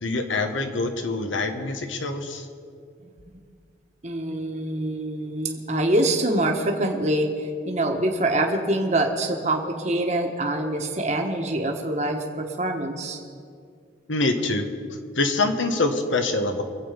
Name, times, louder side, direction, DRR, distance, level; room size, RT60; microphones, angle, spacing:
voice 1, 0.0-2.4 14.1-14.7 15.1-16.6, left 2 dB, 85° left, 6 dB, 1.4 m, -25 dB
voice 2, 4.0-13.2, right 1 dB, 35° right, 2 dB, 1.4 m, -25 dB
24.0 x 8.2 x 5.2 m, 2.3 s
head